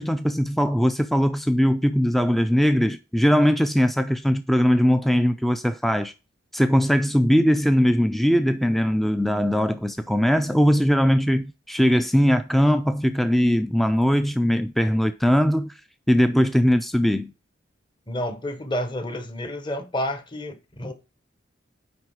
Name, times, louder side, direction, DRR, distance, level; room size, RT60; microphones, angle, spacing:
voice 1, 0.0-6.1 6.5-15.7 16.1-17.3, equal, ahead, 0.3 m, -20 dB
voice 2, 18.1-20.9, left 1 dB, 25° left, 1.0 m, -30 dB
9.5 x 3.9 x 4.6 m
head